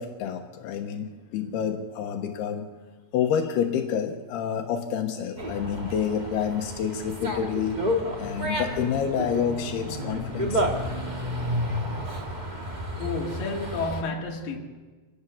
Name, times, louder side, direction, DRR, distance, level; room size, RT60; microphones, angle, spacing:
voice 1, 0.0-2.7 3.1-7.8 8.2-10.6, left 8 dB, 85° left, 3.3 m, -28 dB
Dog, 5.4-14.0, equal, 20° right, 1.3 m, -31 dB
voice 2, 13.0-14.6, left 3 dB, 65° left, 3.9 m, -31 dB
26.5 x 18.5 x 7.2 m
omnidirectional pair, 4.5 m